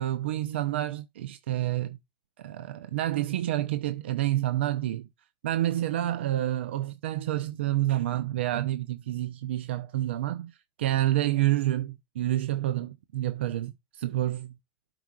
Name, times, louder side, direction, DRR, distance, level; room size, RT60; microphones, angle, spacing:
voice 1, 0.0-2.0 2.4-5.1 5.4-14.6, right 14 dB, 85° right, 0.5 m, -28 dB
12.0 x 4.8 x 2.4 m
hypercardioid pair, 100°, 6 cm